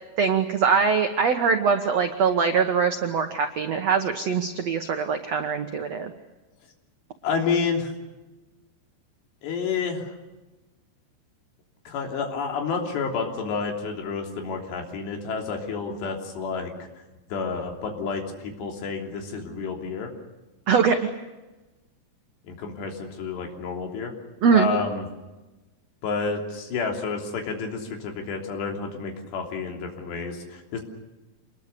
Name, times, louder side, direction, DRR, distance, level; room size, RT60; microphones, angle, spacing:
voice 1, 0.2-6.1 20.7-21.0 24.4-24.7, right 6 dB, 85° right, 6 dB, 1.4 m, -22 dB
voice 2, 7.2-7.9 9.4-10.1 11.9-16.9 17.3-20.1 22.4-24.1 24.5-25.1 26.0-30.8, left 5 dB, 70° left, 2 dB, 5.3 m, -30 dB
27.5 x 21.0 x 6.9 m, 1.1 s
omnidirectional pair, 5.1 m